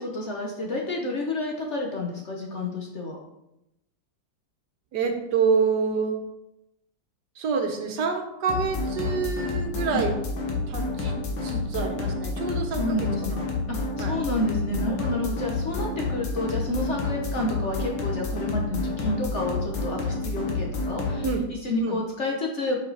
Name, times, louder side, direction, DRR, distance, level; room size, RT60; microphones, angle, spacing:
voice 1, 0.0-3.2 9.9-10.0 11.5-11.6 12.8-13.4 14.0-21.3 21.6-22.8, left 1 dB, 50° left, 0 dB, 0.9 m, -29 dB
voice 2, 4.9-6.2 7.4-10.1 10.7-11.2 11.4-13.4 14.0-14.2 21.2-21.5 21.8-22.0, right 5 dB, 70° right, 5 dB, 1.3 m, -27 dB
sound 1, 8.5-21.4, left 3 dB, 75° left, 1.8 m, -29 dB
5.7 x 5.4 x 3.9 m, 0.87 s
omnidirectional pair, 2.0 m